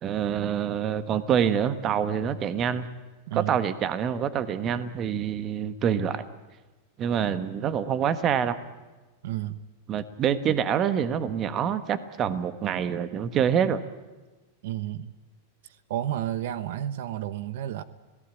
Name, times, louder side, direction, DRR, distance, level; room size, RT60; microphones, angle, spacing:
voice 1, 0.0-2.9 3.3-6.2 7.0-8.6 9.9-13.8, right 8 dB, 30° right, 12 dB, 1.4 m, -26 dB
voice 2, 3.3-3.6 9.2-9.6 14.6-15.1 15.6-17.8, right 12 dB, 70° right, 14 dB, 1.1 m, -32 dB
26.5 x 18.0 x 9.1 m, 1.2 s
supercardioid pair, 145°, 0 cm